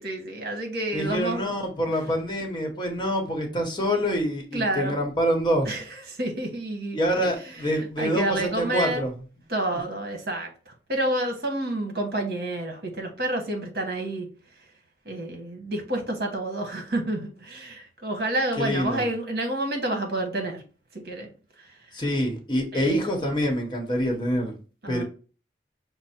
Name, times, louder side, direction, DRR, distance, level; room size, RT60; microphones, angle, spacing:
voice 1, 0.0-1.5 4.5-4.9 5.6-9.0 9.5-14.3 15.0-20.6 20.9-21.3 21.6-21.7 22.7-23.0 24.8-25.0, right 1 dB, 60° right, 3 dB, 1.2 m, -29 dB
voice 2, 0.9-5.7 6.9-9.1 9.7-9.8 18.6-19.0 21.9-24.5 24.9-25.0, equal, 25° left, 2 dB, 1.0 m, -26 dB
5.9 x 2.0 x 4.3 m, 0.36 s
head